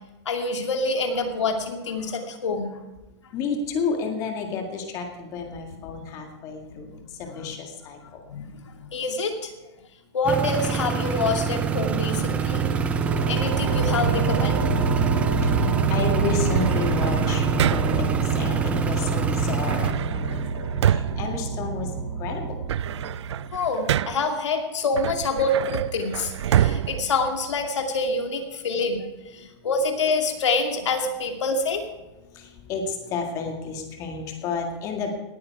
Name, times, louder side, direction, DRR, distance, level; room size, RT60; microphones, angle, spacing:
voice 1, 0.3-2.7 7.4-7.5 8.3-9.5 10.1-12.6 13.2-14.6 23.5-29.1 29.3-31.8, left 3 dB, 85° left, 4 dB, 2.6 m, -26 dB
voice 2, 3.3-8.3 15.2-22.6 29.4-29.5 32.2-35.1, left 5 dB, 20° left, 3 dB, 1.9 m, -32 dB
sound 1, 10.3-19.9, right 7 dB, 10° right, 0.4 m, -26 dB
sound 2, 11.2-23.7, right 4 dB, 55° right, 2.8 m, -27 dB
sound 3, 16.5-18.2 19.6-22.1 22.5-24.4 24.9-28.0, right 10 dB, 75° right, 0.4 m, -27 dB
19.0 x 9.2 x 4.8 m, 1.0 s
hypercardioid pair, 165°, 15 cm